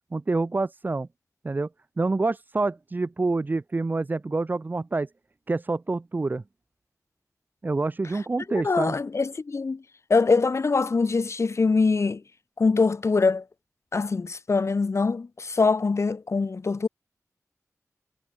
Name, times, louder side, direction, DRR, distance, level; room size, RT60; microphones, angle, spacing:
voice 1, 0.1-1.1 1.4-1.7 2.0-5.1 5.5-6.4 7.6-8.9, right 3 dB, 35° right, 0.6 m, -27 dB
voice 2, 8.5-9.8 10.1-12.2 12.6-13.4 13.9-16.9, left 4 dB, 55° left, 2.7 m, -23 dB
wide cardioid pair, 110°, 6 cm